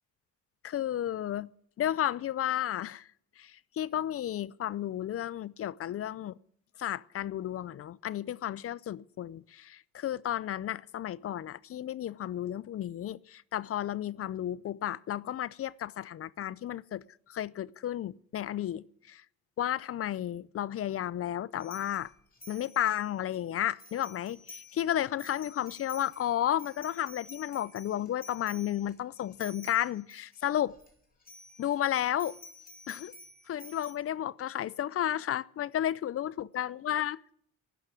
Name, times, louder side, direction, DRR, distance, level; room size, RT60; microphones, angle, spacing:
voice 1, 0.6-1.5 1.8-3.1 3.4-6.3 6.8-19.2 19.6-22.1 22.5-30.7 31.6-32.4 32.9-33.1 33.5-37.2, left 11 dB, 50° left, 0.5 m, -33 dB
sound 1, 21.6-23.4 23.7-24.8 25.1-30.9 31.2-31.8 32.2-33.9, left 1 dB, 30° left, 3.7 m, -51 dB
12.0 x 9.7 x 9.8 m
cardioid pair, 90°, 30 cm